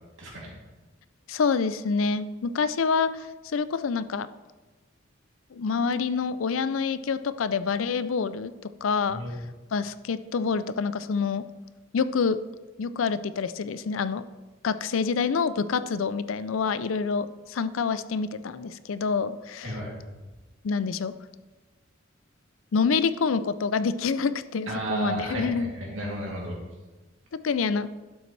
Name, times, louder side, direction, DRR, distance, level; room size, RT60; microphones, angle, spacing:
voice 1, 0.2-0.5 9.1-9.3 19.6-19.9 24.7-26.6, right 1 dB, 70° right, -3 dB, 2.9 m, -33 dB
voice 2, 1.3-3.3 3.5-4.3 5.5-8.5 8.8-9.2 9.7-11.4 11.9-12.4 12.8-14.2 14.6-19.8 20.6-21.1 22.7-25.7 27.4-27.9, left 5 dB, 80° left, 14 dB, 0.5 m, -27 dB
12.0 x 7.9 x 3.3 m, 1.2 s
head